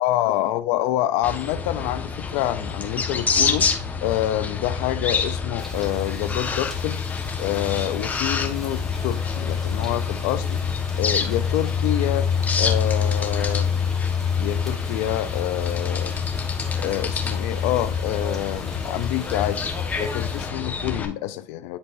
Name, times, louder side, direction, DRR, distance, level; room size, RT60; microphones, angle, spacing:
voice 1, 0.0-3.7 4.0-7.0 7.4-10.6 11.0-12.3 12.6-13.7 14.4-16.1 16.8-19.7 20.0-21.8, left 13 dB, 80° left, 0.4 m, -27 dB
sound 1, 1.2-21.0, left 6 dB, 25° left, 1.3 m, -26 dB
sound 2, 5.6-20.5, left 2 dB, 5° left, 1.9 m, -44 dB
10.5 x 4.0 x 2.6 m
supercardioid pair, 110°, 6 cm